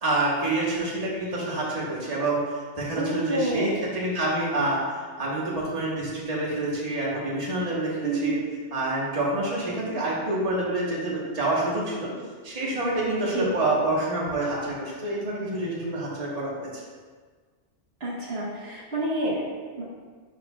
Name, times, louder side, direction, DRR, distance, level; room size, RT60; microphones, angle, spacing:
voice 1, 0.0-4.8 5.2-8.4 8.7-12.1 12.4-16.7, right 2 dB, 35° right, -5 dB, 1.3 m, -27 dB
voice 2, 2.9-3.8 8.0-8.3 13.3-13.5 18.0-19.8, right 1 dB, 70° right, -5 dB, 1.5 m, -29 dB
11.0 x 4.5 x 2.3 m, 1.5 s
omnidirectional pair, 1.1 m